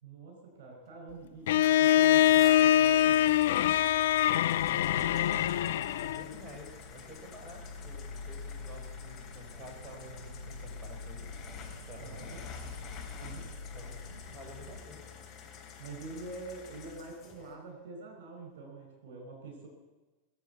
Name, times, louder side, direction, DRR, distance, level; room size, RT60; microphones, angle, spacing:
voice 1, 0.0-3.2 12.0-12.4 13.2-13.5 15.8-19.7, right 3 dB, 55° right, 2 dB, 4.8 m, -45 dB
Bowed string instrument, 1.5-6.3, left 12 dB, 55° left, 0.4 m, -24 dB
sound 1, 1.6-17.5, left 6 dB, 30° left, 3.6 m, -49 dB
voice 2, 4.6-11.4 11.9-12.3 13.7-15.0, equal, 15° right, -1 dB, 5.2 m, -50 dB
sound 2, 4.6-14.8, left 3 dB, 85° right, 0.8 m, -45 dB
21.5 x 7.7 x 8.1 m, 1.2 s
figure-of-eight pair, 90°, 0 cm